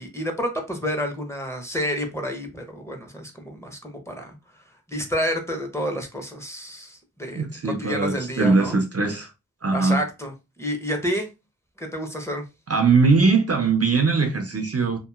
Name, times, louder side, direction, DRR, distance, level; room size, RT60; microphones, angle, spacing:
voice 1, 0.0-4.3 4.9-7.5 7.8-8.7 9.7-10.3 10.6-11.3 11.8-12.4, equal, 10° left, 0.8 m, -29 dB
voice 2, 7.4-9.3 9.6-10.0 12.7-15.0, right 4 dB, 45° right, 0.5 m, -21 dB
2.9 x 2.5 x 2.3 m
wide cardioid pair, 45°, 33 cm